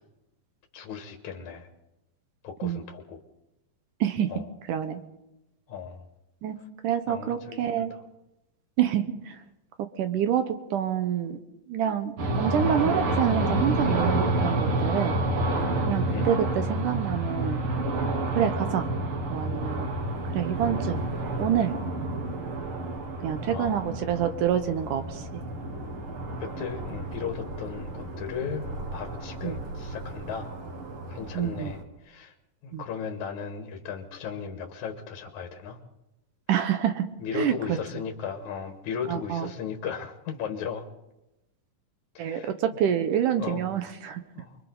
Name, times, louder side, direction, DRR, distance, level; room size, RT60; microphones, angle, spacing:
voice 1, 0.7-1.7 2.4-3.2 4.3-4.5 5.7-6.0 7.1-8.0 16.1-16.3 23.4-23.8 26.4-30.5 31.1-32.3 32.6-35.8 37.2-40.9 42.1-42.5 43.4-43.6 44.3-44.6, left 7 dB, 60° left, 4 dB, 2.6 m, -36 dB
voice 2, 4.0-4.3 4.7-5.0 6.4-6.6 6.8-8.0 8.8-9.4 9.9-11.4 11.7-15.2 15.9-17.6 18.3-18.9 19.3-19.9 20.3-21.0 21.4-21.7 23.2-25.4 29.4-29.6 31.4-31.7 32.7-32.8 36.5-37.1 37.3-38.0 39.1-39.5 42.2-44.2, right 9 dB, 70° right, 9 dB, 2.3 m, -27 dB
sound 1, 12.2-31.8, right 2 dB, 45° right, 2.3 m, -30 dB
29.5 x 23.0 x 3.9 m, 0.92 s
omnidirectional pair, 4.1 m